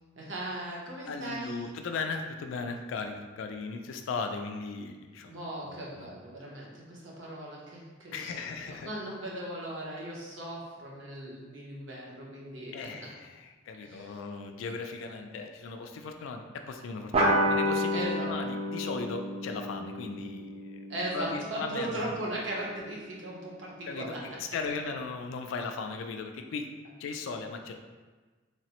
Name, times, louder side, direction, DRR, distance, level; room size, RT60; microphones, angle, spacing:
voice 1, 0.2-1.8 5.3-12.9 13.8-14.2 17.9-18.3 20.9-24.2, right 1 dB, 65° right, -4 dB, 0.7 m, -38 dB
voice 2, 1.1-5.4 5.6-6.1 8.1-8.9 12.7-20.8 21.1-22.0 23.8-26.7 27.0-27.7, left 4 dB, 75° left, 5 dB, 0.3 m, -37 dB
sound 1, 17.1-22.1, equal, 30° right, 0.4 m, -30 dB
3.3 x 2.0 x 2.9 m, 1.3 s
head